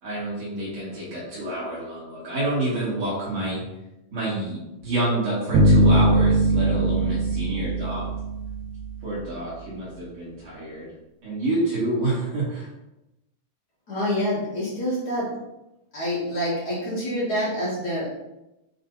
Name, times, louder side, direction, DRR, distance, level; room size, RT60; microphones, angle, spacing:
voice 1, 0.0-3.6 4.1-8.1 9.0-10.9 11.2-12.7, right 1 dB, 45° right, -8 dB, 2.7 m, -28 dB
sound 1, 5.5-8.9, right 1 dB, 80° right, 3.2 m, -20 dB
voice 2, 13.9-15.3 15.9-18.1, equal, 70° left, -9 dB, 0.9 m, -26 dB
8.4 x 3.3 x 4.0 m, 0.93 s
omnidirectional pair, 4.9 m